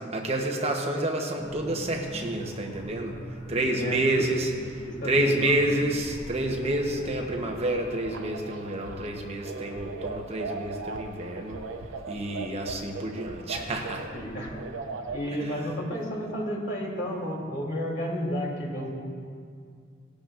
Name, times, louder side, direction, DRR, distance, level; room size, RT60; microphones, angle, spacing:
voice 1, 0.1-3.2 3.5-11.6 12.1-14.1 15.5-15.6, right 1 dB, 35° right, 1 dB, 1.0 m, -29 dB
sound 1, 1.4-7.5, equal, 10° left, 2.1 m, -41 dB
voice 2, 3.7-4.3 4.8-5.6 14.1-14.6 15.1-18.9, equal, 65° left, -4 dB, 3.2 m, -32 dB
sound 2, 7.6-15.3, right 3 dB, 90° right, 0.6 m, -39 dB
18.0 x 11.5 x 2.6 m, 2.2 s
head